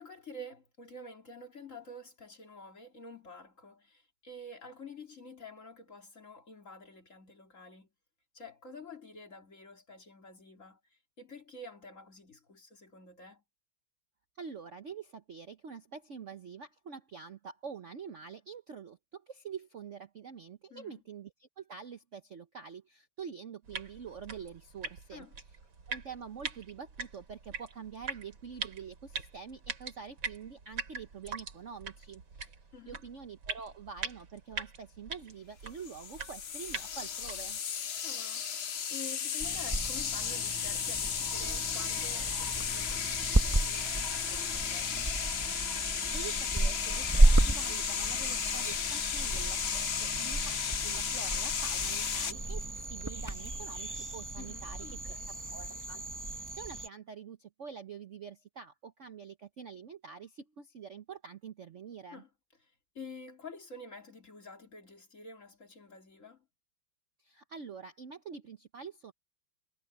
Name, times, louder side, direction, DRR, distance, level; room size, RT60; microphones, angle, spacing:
voice 1, 0.0-7.9 8.3-13.4 20.7-21.0 25.1-25.3 32.7-33.0 38.0-38.6 38.9-45.1 54.4-55.3 62.1-62.3 62.9-66.4, left 2 dB, 40° left, 3.2 m, -49 dB
voice 2, 14.4-25.3 25.9-32.5 32.9-37.6 46.1-55.2 55.5-62.2 67.2-69.1, right 6 dB, 50° right, 1.0 m, -46 dB
sound 1, 23.6-37.6, right 4 dB, 70° right, 3.6 m, -43 dB
sound 2, 35.8-52.3, left 7 dB, 65° left, 0.6 m, -34 dB
sound 3, 39.4-56.9, right 2 dB, 20° right, 0.5 m, -32 dB
omnidirectional pair, 2.2 m